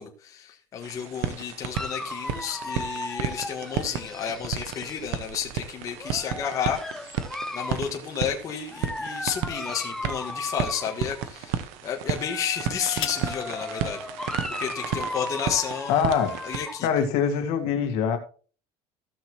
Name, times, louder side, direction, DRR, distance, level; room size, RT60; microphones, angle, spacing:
voice 1, 0.0-7.2 7.5-14.0 14.6-16.9, left 8 dB, 30° left, 1.4 m, -32 dB
sound 1, 0.8-16.6, right 9 dB, 75° right, 1.1 m, -34 dB
Dog, 1.7-5.1 6.0-7.9 8.7-11.3 12.0-16.9, left 2 dB, 5° left, 0.4 m, -36 dB
sound 2, 8.6-9.8 10.5-10.7 12.3-13.4 14.5-14.6 14.9-15.3, left 12 dB, 45° left, 1.6 m, -38 dB
voice 2, 15.9-16.3 16.8-18.2, left 7 dB, 65° left, 1.9 m, -23 dB
15.5 x 6.3 x 2.9 m
cardioid pair, 170°, 11 cm